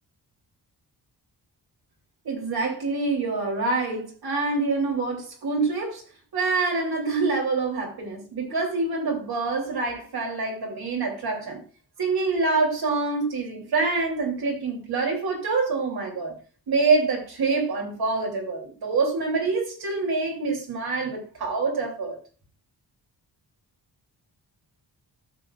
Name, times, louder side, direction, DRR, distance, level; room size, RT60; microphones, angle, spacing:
voice 1, 2.2-6.0 6.3-11.6 12.0-16.4 16.7-22.2, right 3 dB, 65° right, 3.2 m, -26 dB
13.0 x 7.0 x 2.5 m
wide cardioid pair, 110°, 41 cm